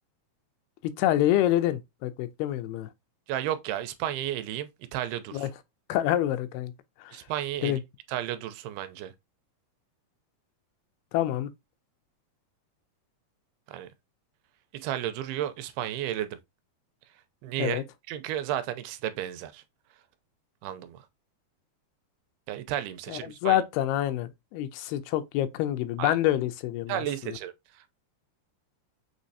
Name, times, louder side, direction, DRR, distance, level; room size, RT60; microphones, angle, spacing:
voice 1, 0.8-2.9 5.3-5.5 5.9-6.7 7.0-7.1 7.6-7.8 11.1-11.5 17.6-17.8 23.1-27.4, left 13 dB, 85° left, 2.6 m, -27 dB
voice 2, 3.3-5.5 7.1-7.8 8.1-9.1 13.7-13.9 14.7-16.4 17.4-17.8 18.1-19.6 20.6-21.1 22.5-23.6 26.0-26.2 26.9-27.8, right 12 dB, 85° right, 2.5 m, -33 dB
6.4 x 3.1 x 2.7 m
omnidirectional pair, 4.4 m